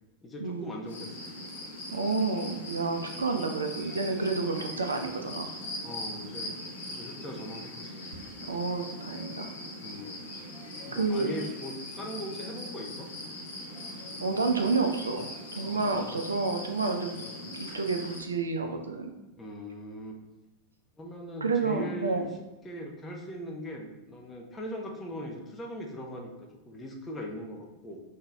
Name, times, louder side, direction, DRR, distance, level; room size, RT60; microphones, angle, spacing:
voice 1, 0.2-1.3 5.8-6.6 6.9-8.1 9.8-10.3 10.8-13.1 15.6-16.2 17.2-17.4 19.4-20.2 21.0-22.3 22.6-28.0, equal, 15° left, 0 dB, 0.6 m, -40 dB
sound 1, 0.9-18.2, left 1 dB, 65° left, 1.2 m, -41 dB
voice 2, 1.9-5.5 8.5-9.5 10.9-11.3 14.2-17.2 17.5-19.1 21.4-22.3, right 4 dB, 75° right, 5 dB, 0.3 m, -30 dB
5.5 x 2.6 x 2.3 m, 1.0 s
figure-of-eight pair, 90°, 0 cm